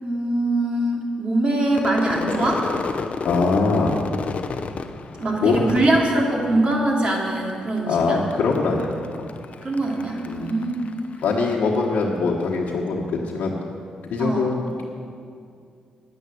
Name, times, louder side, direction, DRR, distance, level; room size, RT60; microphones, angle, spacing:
voice 1, 0.0-2.6 5.2-8.2 9.6-10.9 14.2-14.5, right 1 dB, 40° right, -2 dB, 3.2 m, -22 dB
Crowd / Fireworks, 1.7-7.1 7.4-8.0 8.3-11.9, left 5 dB, 50° left, 0.7 m, -32 dB
voice 2, 3.2-4.0 5.4-5.7 7.9-8.9 9.2-9.3 10.3-10.5 11.2-13.5 14.1-14.6, left 4 dB, 80° left, -5 dB, 1.3 m, -22 dB
10.5 x 9.6 x 7.8 m, 2.4 s
cardioid pair, 70°, 3 cm